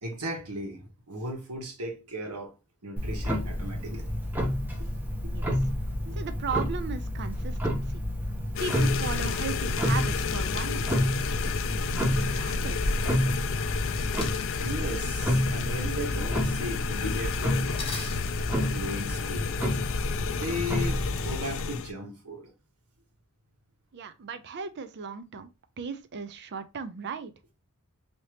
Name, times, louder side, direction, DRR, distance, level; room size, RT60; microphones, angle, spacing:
voice 1, 0.0-2.5 2.8-4.1 4.8-4.9 5.2-5.3 6.0-6.2 10.7-10.9 14.6-18.1 18.5-19.9 20.1-22.5, equal, 90° right, 1.3 m, -37 dB
Clock, 3.0-21.4, equal, 10° right, 0.6 m, -29 dB
voice 2, 6.1-8.0 8.6-11.0 11.3-11.8 12.1-13.0 23.9-25.5 25.8-27.3, right 5 dB, 50° right, 0.5 m, -37 dB
sound 1, 8.5-21.9, left 7 dB, 60° left, 0.3 m, -32 dB
sound 2, 11.6-11.7 12.0-12.1 12.8-12.9 13.0-13.4 13.8-14.5 15.6-15.7 16.0-16.3 16.8-17.3 17.8-18.2, left 4 dB, 25° left, 0.8 m, -40 dB
3.3 x 2.8 x 2.8 m
head